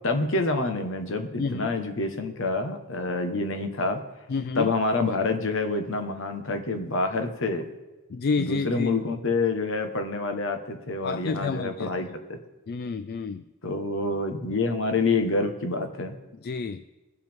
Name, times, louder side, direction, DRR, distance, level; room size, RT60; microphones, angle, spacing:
voice 1, 0.0-4.0 4.5-7.7 8.4-12.4 13.6-16.2, left 3 dB, 65° left, 6 dB, 1.3 m, -27 dB
voice 2, 1.4-1.7 4.3-4.7 8.1-8.9 11.0-11.9 12.7-13.4 16.4-16.8, left 4 dB, 50° left, 12 dB, 0.4 m, -29 dB
22.5 x 7.9 x 3.6 m, 1.2 s
head